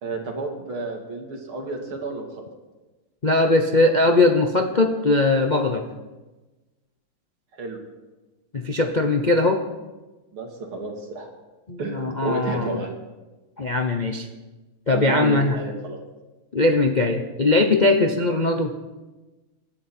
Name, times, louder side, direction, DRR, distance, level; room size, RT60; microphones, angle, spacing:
voice 1, 0.0-2.2 7.5-7.8 10.3-11.3 11.8-12.9 14.9-16.0, right 3 dB, 75° right, 1 dB, 3.4 m, -31 dB
voice 2, 3.2-5.8 8.5-9.6 11.7-12.8 13.6-14.3 14.9-15.6 16.5-18.7, left 2 dB, 40° left, 3 dB, 0.6 m, -20 dB
26.0 x 10.5 x 4.5 m, 1.2 s
omnidirectional pair, 2.3 m